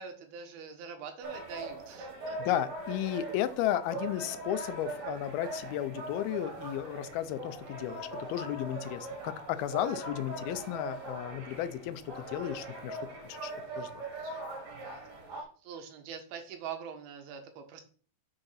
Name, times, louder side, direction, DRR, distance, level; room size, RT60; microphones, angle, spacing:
voice 1, 0.0-2.6 3.6-3.8 14.2-15.0 15.3-17.8, right 6 dB, 85° right, 6 dB, 3.2 m, -45 dB
sound 1, 1.2-15.4, right 2 dB, 65° right, 3.6 m, -41 dB
voice 2, 2.4-12.0 12.3-13.0 13.3-13.9, left 12 dB, 85° left, 13 dB, 2.6 m, -34 dB
7.0 x 5.4 x 5.7 m, 0.42 s
omnidirectional pair, 4.3 m